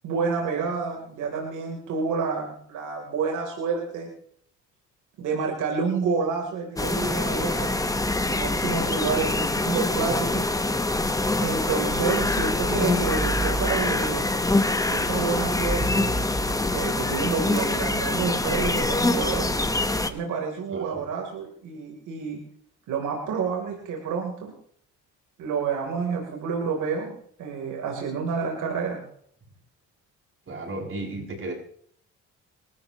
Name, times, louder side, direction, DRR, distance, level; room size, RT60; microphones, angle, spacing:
voice 1, 0.0-4.1 5.2-7.7 8.2-10.4 11.4-14.3 14.9-16.2 16.7-19.6 20.1-22.4 22.9-24.5 25.4-29.0, right 5 dB, 80° right, 0 dB, 3.7 m, -29 dB
sound 1, 6.8-20.1, left 2 dB, 10° left, 1.3 m, -25 dB
voice 2, 8.9-9.2 20.7-21.1 30.5-31.5, right 2 dB, 45° right, -2 dB, 7.5 m, -35 dB
27.0 x 13.5 x 3.1 m, 0.63 s
cardioid pair, 90°, 30 cm